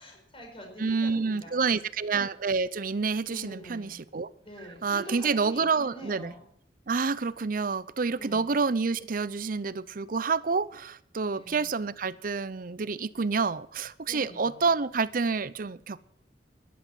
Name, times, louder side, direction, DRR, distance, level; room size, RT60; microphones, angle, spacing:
voice 1, 0.0-1.6 3.3-4.0 4.4-6.5 8.2-8.5 11.2-11.7 14.0-14.7, equal, 30° left, 5.0 m, -45 dB
voice 2, 0.8-4.3 4.8-6.3 6.9-16.0, right 4 dB, 50° right, 0.6 m, -28 dB
13.5 x 11.0 x 7.6 m
head